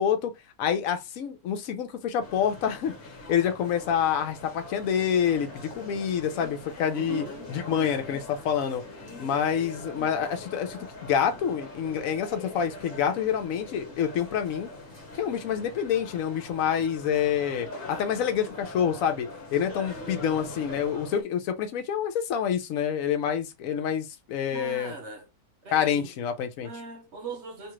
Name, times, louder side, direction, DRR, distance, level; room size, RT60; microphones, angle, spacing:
voice 1, 0.0-2.9 3.3-7.2 7.5-8.8 9.2-14.7 15.1-24.9 25.7-26.7, left 8 dB, 70° left, 1.0 m, -27 dB
sound 1, 2.2-21.2, left 2 dB, 40° left, 1.2 m, -42 dB
voice 2, 6.9-7.4 24.5-25.3 25.6-26.1 26.6-27.7, right 4 dB, 55° right, 1.0 m, -39 dB
2.8 x 2.4 x 3.0 m
omnidirectional pair, 1.6 m